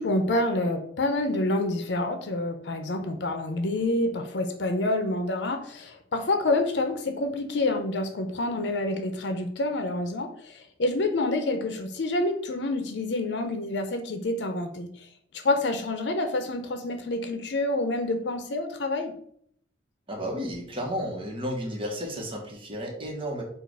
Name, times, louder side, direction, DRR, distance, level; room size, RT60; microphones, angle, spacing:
voice 1, 0.0-14.9 15.3-19.1, left 2 dB, 70° left, 7 dB, 0.6 m, -27 dB
voice 2, 20.1-23.4, equal, 30° right, 0 dB, 1.2 m, -32 dB
4.6 x 2.5 x 4.7 m, 0.65 s
head